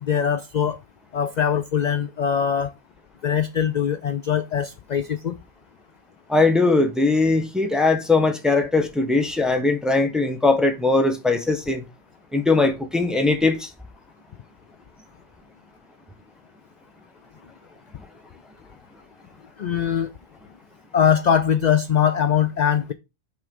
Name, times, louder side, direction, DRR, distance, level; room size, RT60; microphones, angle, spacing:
voice 1, 0.0-0.8 1.1-2.7 3.2-5.4 19.6-20.1 20.9-22.9, left 8 dB, 55° left, 0.4 m, -22 dB
voice 2, 6.3-11.8 12.3-13.7, left 3 dB, ahead, 0.7 m, -20 dB
5.6 x 3.7 x 5.2 m
omnidirectional pair, 1.3 m